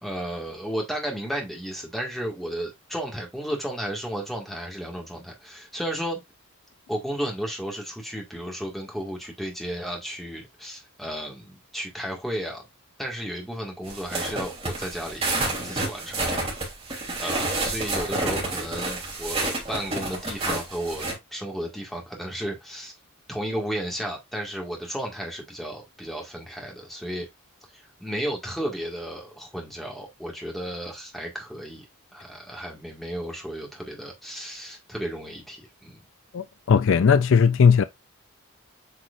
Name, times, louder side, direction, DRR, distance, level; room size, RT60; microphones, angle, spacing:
voice 1, 0.0-6.2 6.9-12.7 13.0-16.4 17.2-22.9 23.3-27.3 27.7-31.9 32.1-36.0, equal, ahead, 1.9 m, -33 dB
sound 1, 13.8-21.1, right 2 dB, 25° right, 3.4 m, -29 dB
voice 2, 36.3-37.8, left 6 dB, 60° left, 0.4 m, -18 dB
8.3 x 4.8 x 2.5 m
head